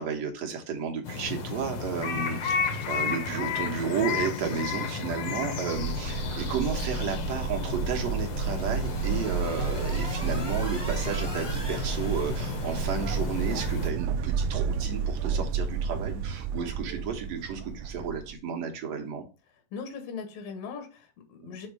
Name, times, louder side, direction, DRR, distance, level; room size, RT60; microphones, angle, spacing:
voice 1, 0.0-19.2 21.4-21.6, right 6 dB, 65° right, 3 dB, 1.9 m, -33 dB
sound 1, 1.0-13.9, left 6 dB, 65° left, 1.4 m, -33 dB
sound 2, 5.8-18.3, right 6 dB, 80° right, 1.8 m, -31 dB
sound 3, 8.1-13.7, equal, 20° left, 0.6 m, -43 dB
voice 2, 19.5-21.7, left 5 dB, 80° left, 6 dB, 2.9 m, -40 dB
7.1 x 3.6 x 4.7 m, 0.33 s
omnidirectional pair, 3.9 m